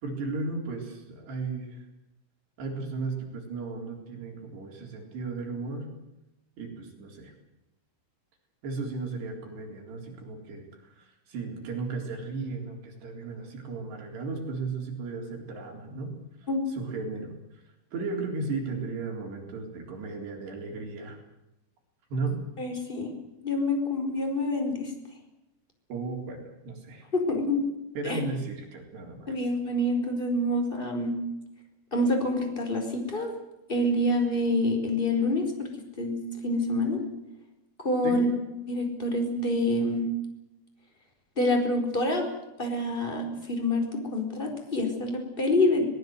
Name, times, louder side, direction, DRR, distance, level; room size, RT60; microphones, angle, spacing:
voice 1, 0.0-1.8 2.6-5.9 6.6-7.3 8.6-16.1 16.4-17.6 17.9-21.2 22.1-22.4 25.9-27.1 28.0-29.4 38.0-38.3, right 3 dB, 60° right, 1 dB, 5.9 m, -35 dB
voice 2, 22.6-23.1 23.4-24.9 27.1-27.7 28.0-28.2 29.3-31.2 31.9-33.3 33.7-35.7 36.0-37.0 37.8-38.3 38.7-40.1 41.4-42.3 42.6-43.8 44.1-45.8, left 1 dB, 10° left, 4 dB, 4.2 m, -27 dB
23.5 x 19.5 x 8.0 m, 0.92 s
omnidirectional pair, 5.5 m